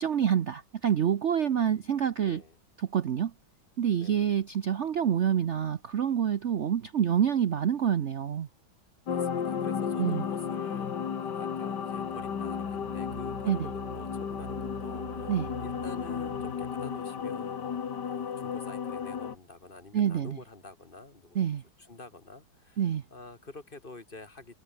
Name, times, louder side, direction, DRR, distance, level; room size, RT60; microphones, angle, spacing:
voice 1, 0.0-2.4 2.8-3.3 3.8-8.5 10.0-10.2 13.5-13.7 15.3-15.5 19.9-20.4 21.3-21.6 22.8-23.0, right 9 dB, 70° right, 0.6 m, -27 dB
voice 2, 2.2-2.6 4.0-4.3 9.1-17.8 18.1-21.5 21.8-24.6, left 3 dB, 25° left, 1.9 m, -48 dB
sound 1, 9.1-19.4, left 7 dB, 55° left, 2.2 m, -34 dB
sound 2, 11.9-17.0, right 3 dB, 35° right, 3.3 m, -45 dB
omnidirectional pair, 2.3 m